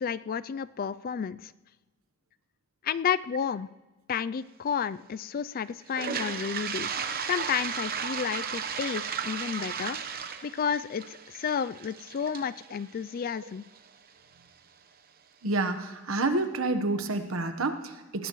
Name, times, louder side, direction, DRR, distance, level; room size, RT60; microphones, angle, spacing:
voice 1, 0.0-1.5 2.8-3.7 4.1-6.9 7.3-10.0 10.4-13.6, left 7 dB, 45° left, 16 dB, 0.4 m, -31 dB
Toilet flush, 5.9-13.8, right 7 dB, 45° right, 0.9 m, -35 dB
voice 2, 15.4-18.3, right 2 dB, 70° right, 9 dB, 1.2 m, -29 dB
18.5 x 16.0 x 3.1 m, 1.2 s
head